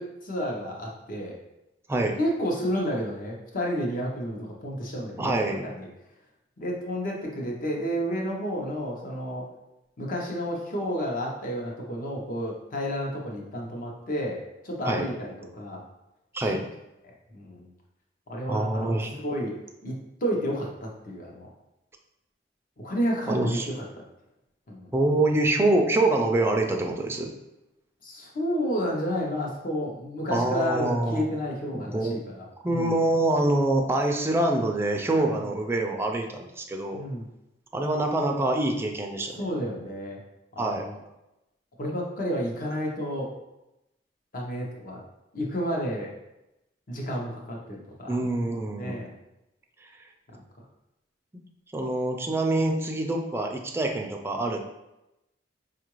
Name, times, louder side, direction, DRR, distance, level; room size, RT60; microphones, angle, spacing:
voice 1, 0.0-1.4 2.2-5.9 6.6-9.4 10.0-14.4 14.6-15.8 16.4-16.5 17.3-17.7 18.3-18.9 19.2-19.6 19.8-21.5 22.8-24.0 24.7-24.9 28.0-33.0 35.4-35.5 36.9-37.3 39.4-40.2 40.6-41.0 41.8-43.3 44.3-45.0 45.3-46.1 46.9-48.2 48.8-49.1, equal, 50° left, -1 dB, 0.8 m, -31 dB
voice 2, 5.2-5.7 14.9-15.1 16.3-16.7 18.5-19.2 23.3-23.7 24.9-27.3 30.3-31.2 31.7-32.2 32.6-37.0 37.7-39.4 40.6-40.9 48.1-49.0 51.7-54.6, right 2 dB, 15° right, 2 dB, 0.4 m, -25 dB
4.6 x 2.4 x 3.0 m, 0.92 s
head